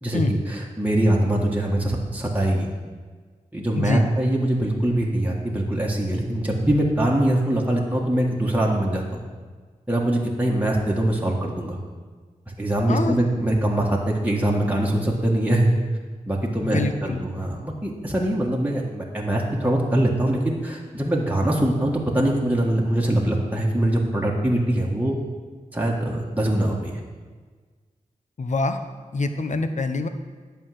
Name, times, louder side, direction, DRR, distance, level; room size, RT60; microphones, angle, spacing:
voice 1, 0.0-2.7 3.5-9.2 9.9-11.8 12.6-15.7 16.3-25.2 25.7-27.0, right 1 dB, 10° right, -3 dB, 1.7 m, -23 dB
voice 2, 3.8-4.1 12.9-13.2 16.6-17.2 28.4-28.8 29.1-30.1, left 3 dB, 60° left, 8 dB, 0.8 m, -25 dB
11.0 x 4.6 x 7.8 m, 1.5 s
cardioid pair, 50°, 14 cm